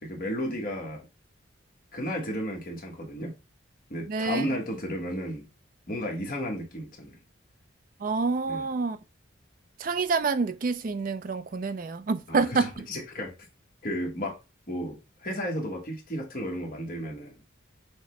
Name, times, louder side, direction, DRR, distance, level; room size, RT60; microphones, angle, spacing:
voice 1, 0.0-1.0 1.9-3.3 3.9-5.4 5.9-7.2 8.5-8.7 12.3-13.3 13.8-14.4 14.7-17.4, equal, 45° left, 1.3 m, -33 dB
voice 2, 4.1-4.5 8.0-9.0 9.8-12.9, right 4 dB, 45° right, 0.4 m, -27 dB
6.3 x 2.1 x 3.1 m
head